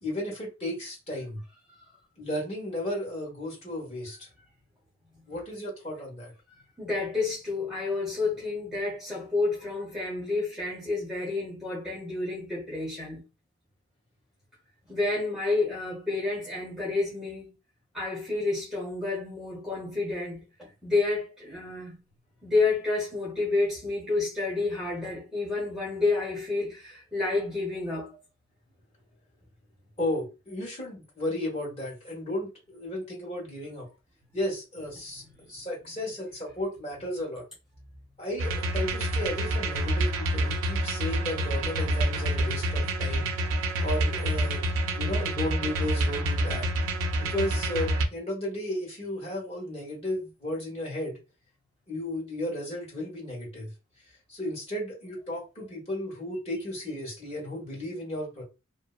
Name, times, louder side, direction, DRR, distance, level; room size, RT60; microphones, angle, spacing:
voice 1, 0.0-1.4 2.2-4.3 5.3-6.3 30.0-33.9 34.3-37.4 38.2-43.3 43.8-44.6 44.9-46.7 47.2-51.2 51.9-53.7 54.3-58.4, left 1 dB, 30° left, 1.2 m, -34 dB
voice 2, 6.8-13.2 14.9-17.5 17.9-22.0 22.4-28.1, left 3 dB, ahead, 0.8 m, -29 dB
sound 1, 38.4-48.1, right 1 dB, 65° right, 0.4 m, -27 dB
2.6 x 2.0 x 2.3 m
head